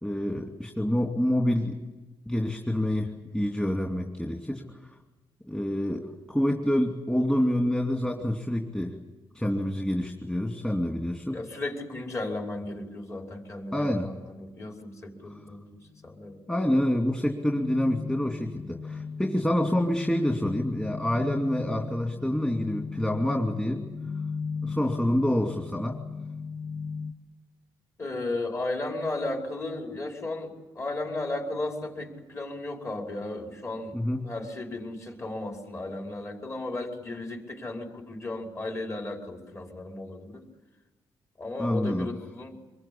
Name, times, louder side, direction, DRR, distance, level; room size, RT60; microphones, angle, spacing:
voice 1, 0.0-1.8 2.3-4.6 5.5-9.0 9.3-11.4 13.7-14.1 16.5-23.8 24.6-26.0 33.9-34.2 41.6-42.1, left 1 dB, 10° left, 1 dB, 2.7 m, -27 dB
voice 2, 11.3-16.4 28.0-40.4 41.4-42.6, left 2 dB, 30° left, 2 dB, 5.3 m, -35 dB
sound 1, 15.3-15.5 15.9-27.1, left 5 dB, 50° left, 1.8 m, -37 dB
25.0 x 22.0 x 8.6 m, 1.1 s
cardioid pair, 115°, 9 cm